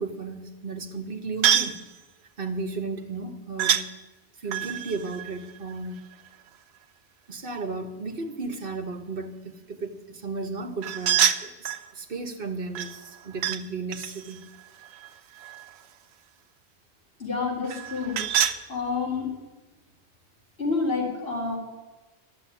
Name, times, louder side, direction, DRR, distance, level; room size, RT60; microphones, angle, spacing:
voice 1, 0.0-1.8 2.4-3.9 4.4-6.0 7.3-11.5 11.9-14.4, right 3 dB, 60° right, 6 dB, 1.4 m, -34 dB
sound 1, 1.4-1.8 3.6-3.9 4.5-6.3 10.8-11.9 12.8-13.6 13.9-15.8 17.7-18.6, right 9 dB, 90° right, 0.9 m, -27 dB
voice 2, 17.2-18.2 18.7-19.3 20.6-21.6, left 4 dB, 65° left, -4 dB, 4.1 m, -28 dB
11.5 x 7.2 x 9.8 m, 1.1 s
omnidirectional pair, 1.1 m